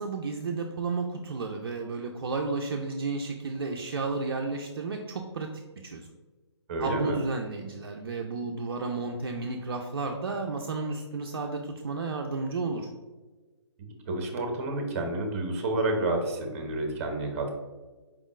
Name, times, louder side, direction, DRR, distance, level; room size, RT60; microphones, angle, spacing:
voice 1, 0.0-6.1 6.8-12.9, right 3 dB, 55° right, 2 dB, 0.4 m, -32 dB
voice 2, 6.7-7.2 14.1-17.5, right 2 dB, 30° right, 4 dB, 0.7 m, -29 dB
4.8 x 3.5 x 2.4 m, 1.3 s
figure-of-eight pair, 140°, 15 cm